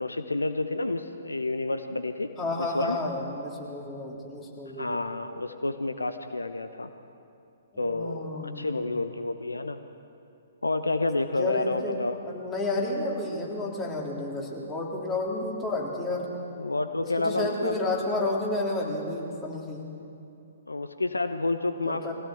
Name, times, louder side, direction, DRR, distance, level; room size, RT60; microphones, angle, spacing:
voice 1, 0.0-2.3 2.6-3.0 4.8-6.9 7.8-9.8 10.6-12.2 16.6-17.8 20.7-22.1, left 2 dB, 80° left, 9 dB, 0.9 m, -29 dB
voice 2, 2.4-5.0 7.7-8.8 11.4-12.0 12.2-16.3 17.0-19.9 21.9-22.1, left 2 dB, 15° left, -3 dB, 3.8 m, -31 dB
22.5 x 16.5 x 7.9 m, 2.7 s
figure-of-eight pair, 125°, 0 cm